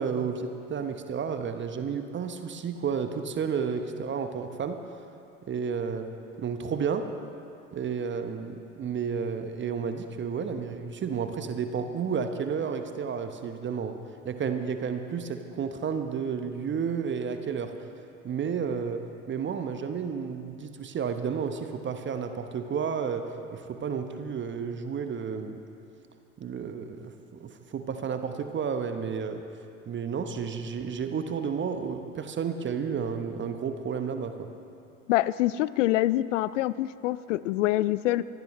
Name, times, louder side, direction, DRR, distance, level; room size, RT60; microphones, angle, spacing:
voice 1, 0.0-4.8 5.5-6.1 6.4-7.1 7.7-14.0 14.2-17.7 18.2-25.6 26.4-29.4 29.9-34.5, right 6 dB, 30° right, 7 dB, 1.0 m, -31 dB
voice 2, 35.1-38.2, left 15 dB, 65° left, 18 dB, 0.5 m, -25 dB
24.5 x 15.0 x 3.2 m, 2.6 s
figure-of-eight pair, 70°, 41 cm